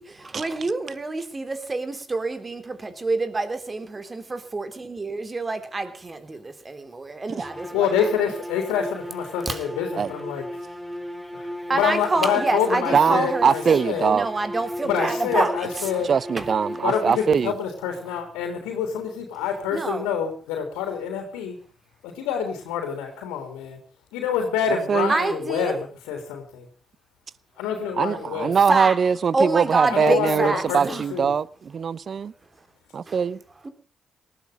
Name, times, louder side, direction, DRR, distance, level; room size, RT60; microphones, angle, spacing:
voice 1, 0.0-7.9 9.5-9.6 11.7-13.8 14.1-15.9 16.4-16.5 19.7-20.1 25.1-25.8 28.7-29.0 29.3-31.0 33.1-33.2 33.6-33.7, right 3 dB, 30° right, 3.4 m, -27 dB
sound 1, 7.4-17.6, equal, 15° right, 5.4 m, -36 dB
voice 2, 7.7-10.4 11.3-11.4 11.7-14.1 14.8-16.1 16.8-21.6 22.2-23.8 24.1-25.8 26.0-26.7 27.6-28.6 29.9-31.3, left 7 dB, 90° left, 3.6 m, -27 dB
voice 3, 12.9-14.3 16.0-17.5 24.9-25.1 28.0-32.3 32.9-33.4, right 6 dB, 55° right, 0.8 m, -22 dB
19.0 x 13.5 x 5.2 m
supercardioid pair, 50°, 0 cm